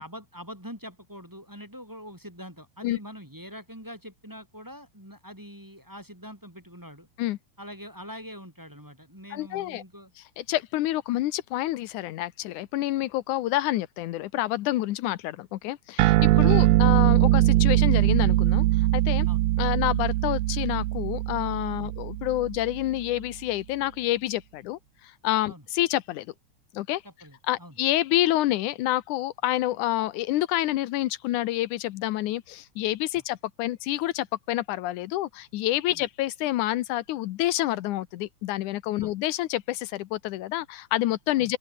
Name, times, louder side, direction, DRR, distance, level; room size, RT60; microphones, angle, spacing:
voice 1, 0.0-7.1 7.6-10.1 16.4-16.6 19.3-19.4 21.8-21.9 25.5-25.6 27.0-27.8 35.9-36.0 39.0-39.1 41.4-41.5, equal, 5° right, 4.6 m, -44 dB
voice 2, 9.3-9.8 10.4-19.3 19.6-26.3 26.7-27.0 27.5-41.6, left 15 dB, 85° left, 2.3 m, -28 dB
sound 1, 16.0-22.8, right 18 dB, 85° right, 2.1 m, -22 dB
open air
omnidirectional pair, 3.4 m